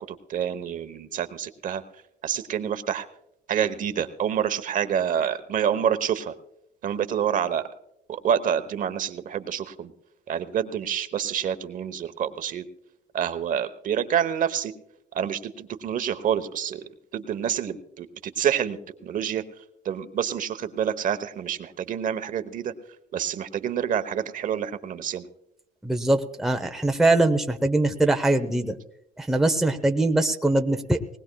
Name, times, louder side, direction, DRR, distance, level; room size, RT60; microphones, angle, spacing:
voice 1, 0.0-1.8 2.2-3.1 3.5-6.3 6.8-7.7 8.1-9.9 10.3-12.7 13.1-14.7 15.1-19.4 19.8-22.7 23.1-25.3, right 9 dB, 50° right, 11 dB, 0.9 m, -27 dB
voice 2, 25.8-28.8 29.2-31.0, right 2 dB, ahead, 5 dB, 0.8 m, -22 dB
19.5 x 19.5 x 2.2 m, 0.83 s
cardioid pair, 110°, 17 cm